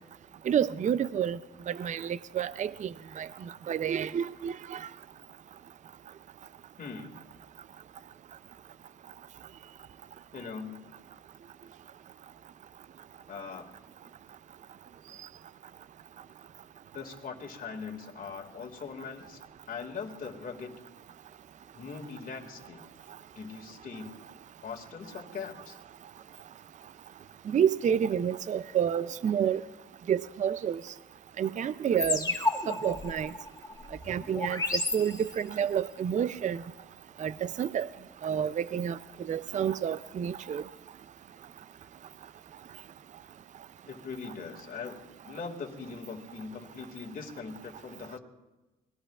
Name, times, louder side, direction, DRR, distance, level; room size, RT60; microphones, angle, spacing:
voice 1, 0.5-1.4 1.7-3.3 3.7-4.8 27.5-29.6 30.1-30.8 31.4-32.2 32.7-33.3 34.1-34.6 34.9-36.6 37.2-37.3 37.6-37.9 38.2-39.0 39.3-40.6, right 8 dB, 40° right, 16 dB, 0.5 m, -29 dB
voice 2, 6.8-7.2 10.3-10.9 13.3-13.7 16.9-19.4 19.7-20.7 21.7-22.8 23.3-24.1 24.6-25.8 43.9-48.2, left 5 dB, 45° left, 1 dB, 2.1 m, -41 dB
sound 1, 32.0-35.6, left 3 dB, 20° left, 1.8 m, -32 dB
24.5 x 19.5 x 2.4 m, 1.1 s
cardioid pair, 90°, 20 cm